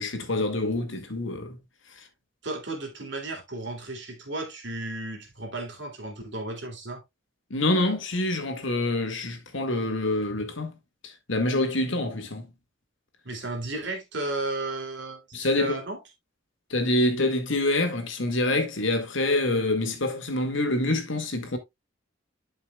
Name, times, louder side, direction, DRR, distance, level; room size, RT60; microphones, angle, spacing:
voice 1, 0.0-1.6 2.0-2.1 7.5-10.8 11.0-12.5 15.3-15.8 16.7-21.6, left 2 dB, 70° left, 1.9 m, -26 dB
voice 2, 2.4-7.0 13.2-16.0, right 2 dB, 60° right, 2.9 m, -34 dB
11.5 x 5.6 x 2.3 m
head